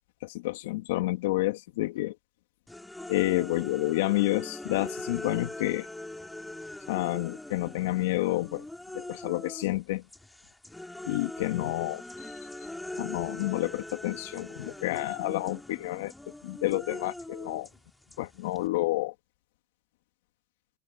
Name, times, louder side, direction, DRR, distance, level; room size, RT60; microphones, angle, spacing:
voice 1, 0.2-2.2 3.1-5.9 6.9-8.6 8.9-10.0 11.0-12.4 13.0-16.1 16.4-17.7 18.2-19.1, left 18 dB, 80° left, 2.6 m, -29 dB
sound 1, 2.7-9.8 10.1-18.7, left 1 dB, 5° left, 4.2 m, -42 dB
supercardioid pair, 105°, 0 cm